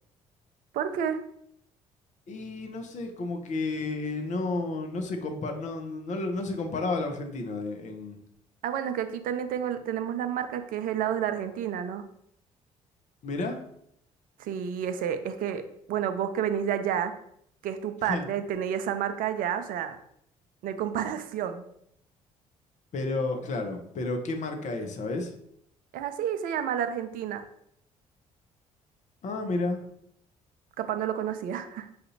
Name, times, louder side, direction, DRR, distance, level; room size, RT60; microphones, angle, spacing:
voice 1, 0.7-1.2 8.6-12.0 14.4-17.1 17.6-20.0 20.6-21.6 25.9-27.4 30.8-31.9, right 9 dB, 55° right, 9 dB, 0.5 m, -30 dB
voice 2, 2.3-8.2 13.2-13.6 18.0-18.2 22.9-25.3 29.2-29.8, left 3 dB, 45° left, 4 dB, 0.8 m, -31 dB
5.7 x 2.6 x 2.8 m, 0.71 s
figure-of-eight pair, 50°, 17 cm